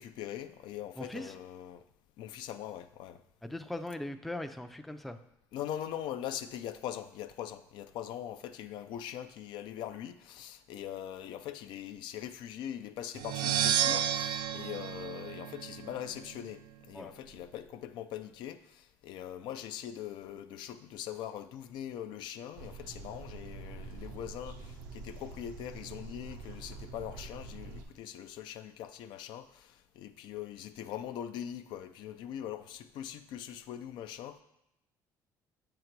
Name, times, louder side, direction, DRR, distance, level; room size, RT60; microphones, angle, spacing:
voice 1, 0.0-1.8 2.2-3.2 5.5-16.6 16.9-34.4, left 10 dB, 70° left, 10 dB, 0.4 m, -42 dB
voice 2, 1.0-1.3 3.4-5.2 16.9-17.1, left 1 dB, ahead, 7 dB, 0.4 m, -39 dB
sound 1, 13.1-16.0, right 10 dB, 70° right, 0.3 m, -31 dB
sound 2, 22.6-27.8, right 4 dB, 90° right, 0.8 m, -46 dB
7.7 x 3.8 x 4.5 m, 0.86 s
cardioid pair, 105°, 8 cm